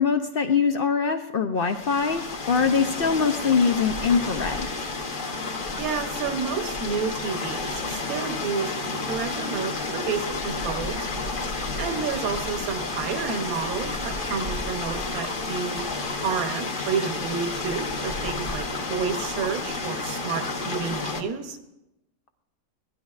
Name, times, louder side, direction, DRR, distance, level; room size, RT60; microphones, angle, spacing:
voice 1, 0.0-4.7, left 5 dB, 75° left, 6 dB, 0.5 m, -23 dB
sound 1, 1.6-21.2, left 3 dB, 40° left, 1.0 m, -31 dB
voice 2, 5.8-11.1 11.8-15.8 16.2-21.6, right 6 dB, 80° right, 6 dB, 1.3 m, -30 dB
17.0 x 11.5 x 2.4 m, 0.95 s
omnidirectional pair, 1.5 m